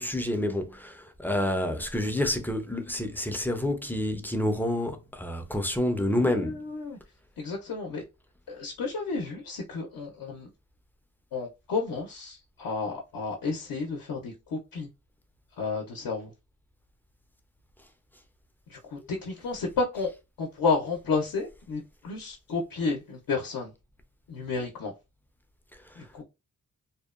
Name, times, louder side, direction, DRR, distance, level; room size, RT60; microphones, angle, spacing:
voice 1, 0.0-6.6 19.0-19.1 25.9-26.0, left 1 dB, 5° left, 0.3 m, -28 dB
voice 2, 6.2-7.0 7.4-8.0 8.5-10.5 11.3-14.9 15.6-16.3 18.7-20.1 20.4-23.7 24.3-24.9 26.0-26.2, left 4 dB, 80° left, 0.6 m, -31 dB
2.7 x 2.1 x 2.3 m
wide cardioid pair, 115°, 34 cm